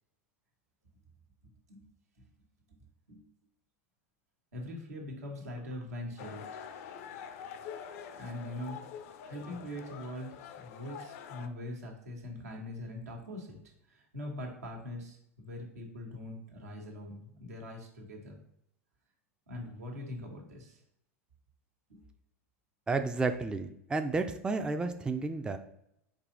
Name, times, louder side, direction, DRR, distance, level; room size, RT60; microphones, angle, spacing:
voice 1, 4.5-6.7 8.1-8.8 9.2-10.3 10.6-13.6 13.9-18.4 19.5-20.8 21.9-22.0, left 1 dB, 85° right, 1 dB, 1.3 m, -42 dB
sound 1, 6.2-11.5, left 7 dB, 65° left, 0.5 m, -45 dB
voice 2, 22.9-25.6, right 3 dB, 10° right, 8 dB, 0.3 m, -31 dB
4.7 x 2.8 x 3.8 m, 0.77 s
hypercardioid pair, 95°, 8 cm